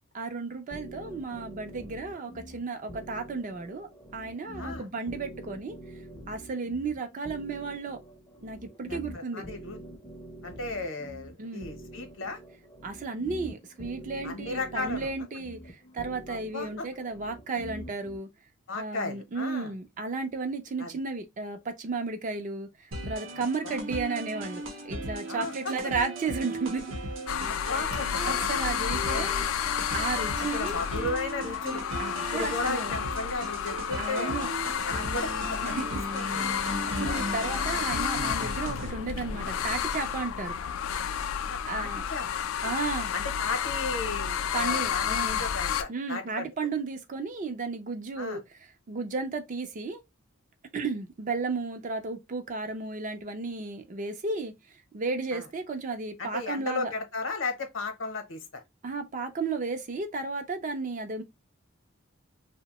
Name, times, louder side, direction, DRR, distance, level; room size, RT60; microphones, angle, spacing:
voice 1, 0.1-5.8 6.3-8.0 8.4-9.4 11.4-11.7 12.8-15.6 15.9-18.3 18.7-22.7 23.1-26.8 27.7-27.9 28.3-29.4 29.9-30.8 32.0-32.9 34.0-34.5 35.6-35.8 36.5-40.6 41.6-42.0 42.6-43.1 44.5-45.4 45.9-48.4 48.9-50.0 50.7-54.5 54.9-56.9 58.8-61.2, right 4 dB, 40° right, 0.4 m, -33 dB
sound 1, 0.7-18.2, equal, 20° left, 0.5 m, -45 dB
voice 2, 4.5-4.9 8.9-9.8 10.4-12.4 14.2-15.1 16.3-16.9 18.7-19.7 20.8-20.9 23.3-23.8 25.3-25.7 27.4-28.3 29.1-29.3 30.5-31.8 32.1-34.4 34.8-36.5 37.0-37.3 41.4-42.4 43.1-46.5 48.2-48.4 55.3-55.4 56.2-58.6, left 3 dB, 70° left, 0.8 m, -35 dB
sound 2, 22.9-38.9, right 1 dB, 70° right, 0.8 m, -37 dB
sound 3, 27.3-45.8, left 8 dB, 85° left, 0.3 m, -31 dB
2.7 x 2.1 x 2.8 m
head